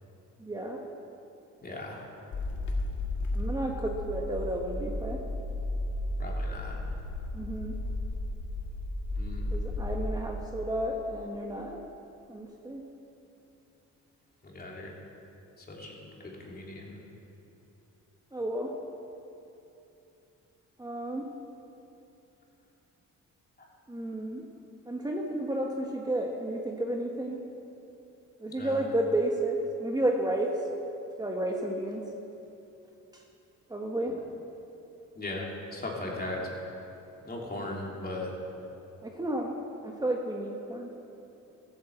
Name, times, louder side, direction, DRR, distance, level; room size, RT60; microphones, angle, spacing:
voice 1, 0.4-0.8 3.3-5.2 7.3-7.8 9.5-11.8 12.3-12.8 18.3-18.7 20.8-21.3 23.9-24.4 24.8-27.4 28.4-30.7 31.2-32.0 33.1-33.2 33.7-34.2 39.0-39.6 39.8-40.9, right 1 dB, 15° right, 0 dB, 1.3 m, -32 dB
voice 2, 1.6-2.0 6.2-6.8 9.1-9.5 14.4-14.9 15.6-17.0 28.6-28.8 35.1-36.5 37.2-38.3, left 2 dB, 30° left, -2 dB, 3.3 m, -38 dB
sound 1, 2.3-10.1, left 1 dB, 70° left, 2.1 m, -33 dB
14.5 x 9.1 x 7.6 m, 2.9 s
cardioid pair, 90°, 30 cm